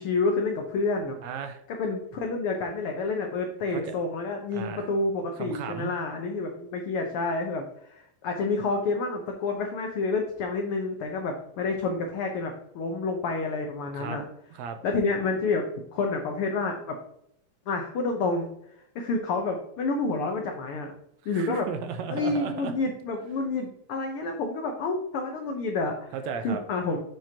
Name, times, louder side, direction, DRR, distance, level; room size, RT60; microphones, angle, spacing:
voice 1, 0.0-1.2 1.7-14.2 14.8-15.7 15.9-17.0 17.7-18.5 18.9-20.9 21.3-21.7 22.1-26.1 26.4-27.0, left 3 dB, 85° left, 3 dB, 1.2 m, -29 dB
voice 2, 1.2-1.6 3.7-3.9 4.5-4.9 5.4-5.9 13.9-14.2 14.5-14.8 21.3-22.7 26.1-26.6, right 6 dB, 80° right, 7 dB, 1.8 m, -35 dB
9.0 x 5.1 x 2.8 m, 0.74 s
omnidirectional pair, 3.5 m